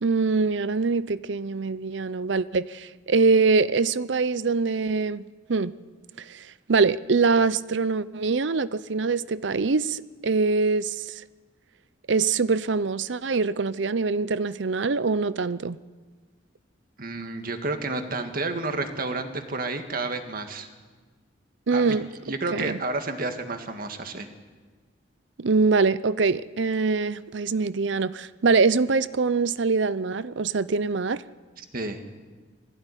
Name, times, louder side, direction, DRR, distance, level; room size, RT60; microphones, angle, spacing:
voice 1, 0.0-5.7 6.3-11.1 12.1-15.8 21.7-22.1 22.5-22.8 25.4-31.2, right 4 dB, 70° right, 16 dB, 0.6 m, -24 dB
voice 2, 17.0-20.7 21.7-22.0 22.3-24.3 31.6-32.0, right 3 dB, 50° right, 6 dB, 1.9 m, -30 dB
21.5 x 15.5 x 10.0 m, 1.4 s
head